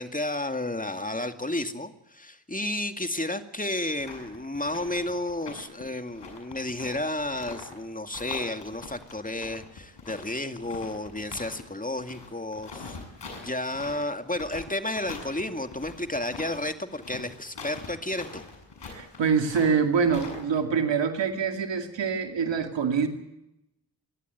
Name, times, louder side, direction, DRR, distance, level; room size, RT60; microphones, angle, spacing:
voice 1, 0.0-13.0 13.4-18.4, left 1 dB, 20° left, 7 dB, 2.3 m, -32 dB
sound 1, 4.0-7.8 8.1-11.6 11.9-20.6, left 4 dB, 70° left, 7.3 m, -43 dB
voice 2, 18.8-23.1, right 6 dB, 80° right, 6 dB, 2.5 m, -25 dB
28.5 x 11.5 x 9.4 m, 0.88 s
supercardioid pair, 40°, 44 cm